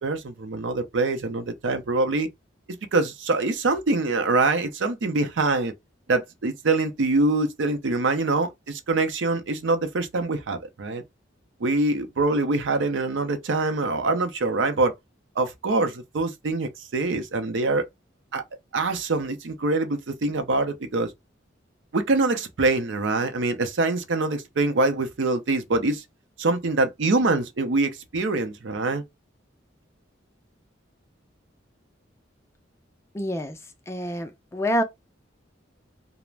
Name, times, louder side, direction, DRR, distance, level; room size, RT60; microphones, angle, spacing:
voice 1, 0.0-2.3 2.9-5.7 6.1-11.0 11.6-14.9 15.4-17.8 18.3-18.4 18.7-21.1 21.9-26.0 26.4-29.0, right 3 dB, 75° right, 0.5 m, -24 dB
voice 2, 33.1-33.6 33.9-34.8, equal, 15° left, 0.3 m, -27 dB
2.4 x 2.0 x 3.2 m
head